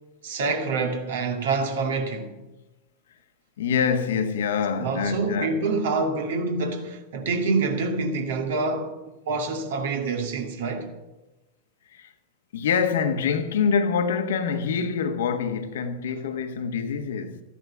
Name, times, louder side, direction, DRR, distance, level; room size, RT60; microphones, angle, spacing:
voice 1, 0.2-2.3 4.8-9.0 9.3-10.9, right 4 dB, 60° right, 2.2 m, -26 dB
voice 2, 3.6-5.6 11.9-12.1 12.5-17.4, left 6 dB, 60° left, 1.3 m, -25 dB
14.0 x 11.5 x 7.1 m
figure-of-eight pair, 90°, 0 cm